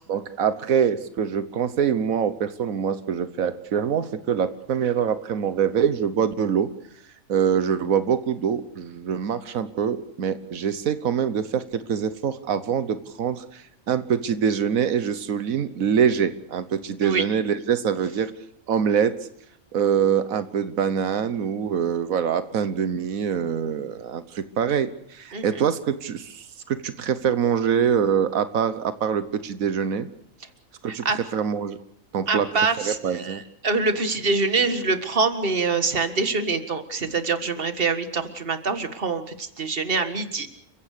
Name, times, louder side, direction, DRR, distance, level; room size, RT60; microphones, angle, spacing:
voice 1, 0.1-6.7 7.3-18.3 18.7-19.1 19.7-30.1 30.8-31.8 32.1-32.5 32.8-33.4, right 7 dB, 85° right, 12 dB, 1.5 m, -24 dB
voice 2, 25.3-25.6 30.9-31.2 32.3-40.5, right 4 dB, 45° right, 9 dB, 1.9 m, -25 dB
30.0 x 16.0 x 6.7 m, 0.72 s
omnidirectional pair, 1.4 m